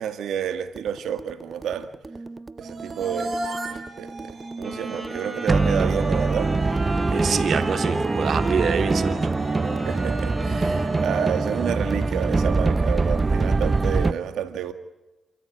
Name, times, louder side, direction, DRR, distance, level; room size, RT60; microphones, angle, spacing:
voice 1, 0.0-1.9 2.6-7.3 9.9-14.7, right 9 dB, 80° right, 2.1 m, -30 dB
sound 1, 0.8-14.1, right 3 dB, 30° right, 0.8 m, -24 dB
sound 2, 2.6-12.8, right 2 dB, 50° right, 4.0 m, -36 dB
Wind instrument woodwind instrument, 4.6-11.8, right 1 dB, 10° right, 7.0 m, -34 dB
voice 2, 7.1-9.3, right 6 dB, 65° right, 2.5 m, -26 dB
28.0 x 14.0 x 8.5 m
cardioid pair, 60°, 0 cm